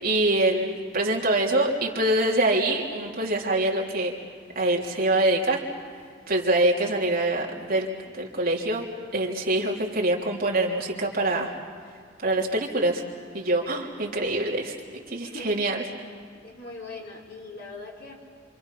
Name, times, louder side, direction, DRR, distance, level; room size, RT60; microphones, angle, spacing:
voice 1, 0.0-4.1 4.5-5.6 6.3-7.9 8.1-8.9 9.1-11.6 12.2-13.0 13.3-15.8, right 1 dB, 50° right, -2 dB, 3.3 m, -24 dB
voice 2, 13.6-14.2 15.2-15.6 16.4-18.1, left 3 dB, 60° left, -3 dB, 4.7 m, -41 dB
28.0 x 27.0 x 5.8 m, 2.2 s
head